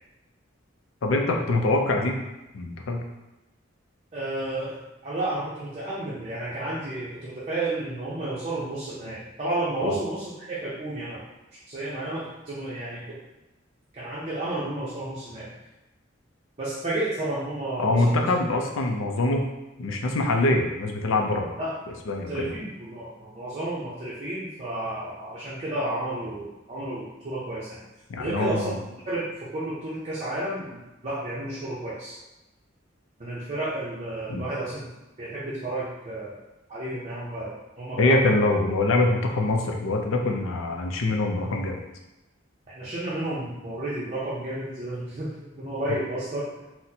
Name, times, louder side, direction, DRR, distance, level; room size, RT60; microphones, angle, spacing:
voice 1, 1.0-2.2 2.5-3.0 9.8-10.0 17.8-19.5 19.8-21.5 22.1-22.5 28.1-28.7 34.3-34.4 38.0-41.8, left 2 dB, 80° left, 2 dB, 0.5 m, -24 dB
voice 2, 4.1-11.2 11.7-13.2 13.9-15.5 16.6-18.3 21.6-21.8 22.3-27.8 28.2-28.7 29.1-32.2 33.2-34.9 35.2-36.4 36.7-38.4 42.8-46.6, right 1 dB, 35° right, -8 dB, 0.6 m, -32 dB
4.1 x 2.1 x 2.7 m, 1.0 s
head